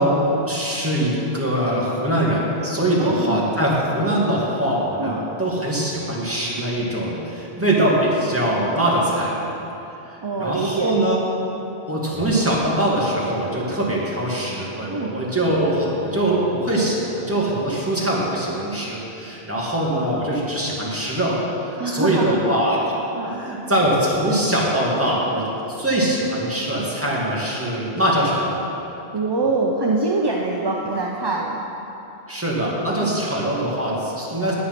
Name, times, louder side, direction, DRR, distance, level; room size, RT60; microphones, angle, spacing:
voice 1, 0.0-9.3 10.1-11.2 11.9-21.4 21.7-22.8 23.2-28.7 32.3-34.5, right 1 dB, 10° right, -5 dB, 2.0 m, -22 dB
voice 2, 3.0-3.4 5.0-5.3 10.2-10.9 14.9-15.2 21.8-22.4 23.2-23.4 29.1-31.6 33.0-33.2, right 3 dB, 30° right, -2 dB, 0.6 m, -24 dB
Bowed string instrument, 13.0-18.3, right 1 dB, 10° left, 1.4 m, -42 dB
9.8 x 8.5 x 5.9 m, 3.0 s
omnidirectional pair, 1.1 m